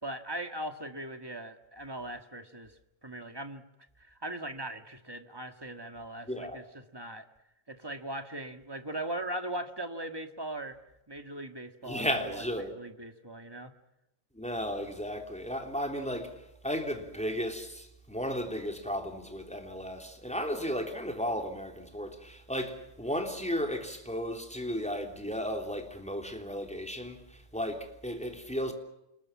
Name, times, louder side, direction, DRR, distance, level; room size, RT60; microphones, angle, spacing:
voice 1, 0.0-2.7 3.0-3.6 4.0-7.3 7.7-10.8 11.1-13.7, right 1 dB, 15° right, 0.8 m, -39 dB
voice 2, 6.3-6.6 11.8-12.7 14.3-16.4 16.6-28.7, equal, ahead, 3.1 m, -34 dB
29.0 x 21.0 x 7.3 m
omnidirectional pair, 3.3 m